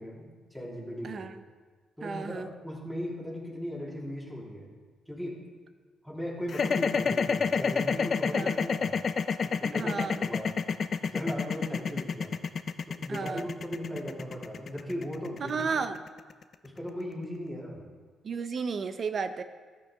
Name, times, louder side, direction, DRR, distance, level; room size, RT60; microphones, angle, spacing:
voice 1, 0.0-1.3 2.0-4.7 5.1-5.4 6.0-9.0 9.4-10.6 11.0-12.3 12.9-15.7 16.6-17.8, equal, 5° right, -5 dB, 3.6 m, -38 dB
voice 2, 1.0-1.4 2.0-2.5 8.3-8.6 9.7-10.2 13.1-13.4 15.4-16.0 18.2-19.4, right 5 dB, 50° right, 10 dB, 0.7 m, -33 dB
sound 1, 6.5-16.7, left 5 dB, 45° left, 0.6 m, -28 dB
14.0 x 9.0 x 3.6 m, 1.5 s
cardioid pair, 90°, 0 cm